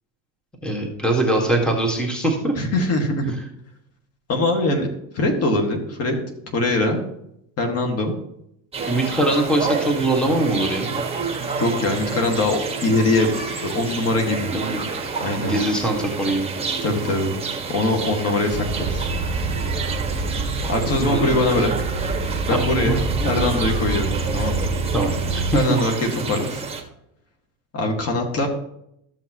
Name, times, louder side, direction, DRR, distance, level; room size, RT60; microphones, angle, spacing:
voice 1, 0.6-2.5 8.8-10.9 14.5-14.8 15.4-16.5 21.0-21.3 22.5-22.9 24.9-25.8, right 1 dB, ahead, 1 dB, 1.8 m, -22 dB
voice 2, 2.6-3.3 4.3-4.9 5.1-6.2 6.5-7.0 7.6-8.1 11.6-13.3 13.6-14.5 15.2-15.5 16.8-17.3 17.7-19.0 20.7-21.7 22.5-23.0 23.2-24.1 24.3-24.7 25.5-26.6 27.7-28.5, left 2 dB, 40° left, 3 dB, 1.9 m, -22 dB
sound 1, 8.7-26.8, right 5 dB, 15° right, 1.5 m, -29 dB
sound 2, 18.5-25.6, right 3 dB, 30° right, 1.5 m, -26 dB
14.0 x 5.9 x 3.0 m, 0.76 s
supercardioid pair, 115°, 38 cm